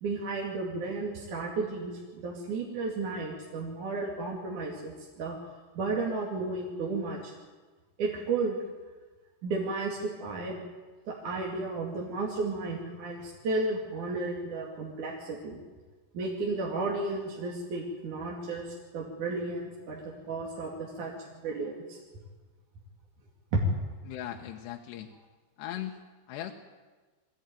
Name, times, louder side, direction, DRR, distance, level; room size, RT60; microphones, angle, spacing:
voice 1, 0.0-5.4 5.8-7.3 8.0-8.6 9.4-10.6 11.1-15.6 16.1-18.7 18.9-22.0 23.5-23.6, right 3 dB, 50° right, -2 dB, 3.6 m, -33 dB
voice 2, 24.0-25.1 25.6-26.0 26.3-26.5, left 12 dB, 80° left, 2 dB, 3.2 m, -38 dB
23.0 x 17.0 x 9.2 m, 1.3 s
omnidirectional pair, 5.0 m